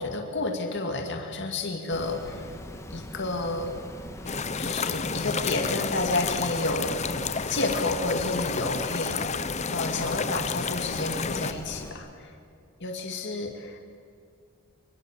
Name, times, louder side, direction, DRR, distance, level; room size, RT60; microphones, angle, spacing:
voice 1, 0.0-2.5 2.9-3.7 4.6-6.9 7.5-9.4 9.7-12.3 12.8-13.8, left 2 dB, 55° left, 3 dB, 2.4 m, -30 dB
Water, 1.9-11.9, left 1 dB, 15° left, 1.8 m, -41 dB
sound 1, 4.3-11.5, left 5 dB, 30° left, 0.8 m, -31 dB
25.0 x 24.5 x 7.5 m, 2.3 s
head